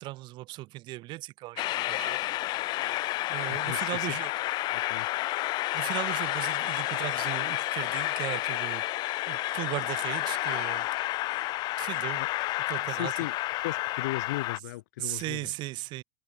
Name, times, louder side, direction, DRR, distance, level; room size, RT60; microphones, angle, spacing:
voice 1, 0.0-2.2 3.3-4.3 5.7-10.9 11.3-11.5 11.8-12.2 12.7-13.1 15.0-16.0, right 18 dB, 50° right, 4.9 m, -37 dB
Train, 1.6-14.6, left 18 dB, 45° left, 0.7 m, -30 dB
voice 2, 3.5-4.1 4.7-5.1 12.2-12.3 12.9-13.4 13.6-15.5, left 18 dB, 60° left, 4.3 m, -36 dB
figure-of-eight pair, 80°, 10 cm